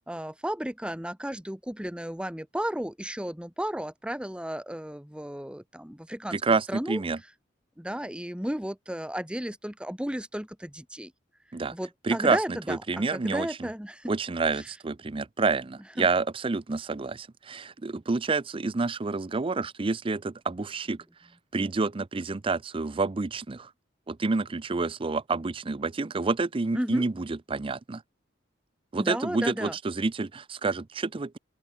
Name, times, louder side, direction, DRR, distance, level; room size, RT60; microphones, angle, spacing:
voice 1, 0.0-6.4 6.7-7.0 7.8-11.1 11.7-14.1 14.5-14.7 16.0-16.1 26.7-27.0 28.9-29.8, equal, 5° right, 1.4 m, -34 dB
voice 2, 6.3-7.2 11.5-11.7 12.0-13.7 14.1-21.0 21.5-23.7 24.1-28.0 28.9-31.4, right 3 dB, 30° right, 0.5 m, -28 dB
open air
head